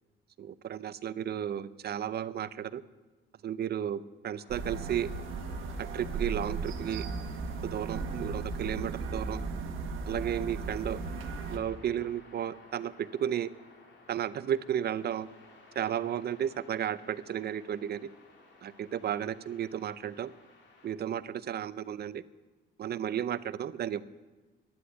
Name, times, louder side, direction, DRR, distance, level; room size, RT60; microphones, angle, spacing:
voice 1, 0.4-2.8 3.4-5.1 5.8-7.1 7.6-9.4 10.1-11.0 11.5-13.5 14.1-15.3 15.8-18.1 18.6-20.3 20.8-22.2 22.8-24.0, right 9 dB, 55° right, 16 dB, 0.6 m, -33 dB
sound 1, 4.3-20.9, left 3 dB, 65° left, 3.1 m, -57 dB
sound 2, 4.5-11.6, right 4 dB, 85° right, 1.4 m, -36 dB
11.5 x 9.8 x 8.4 m, 1.2 s
cardioid pair, 90°, 20 cm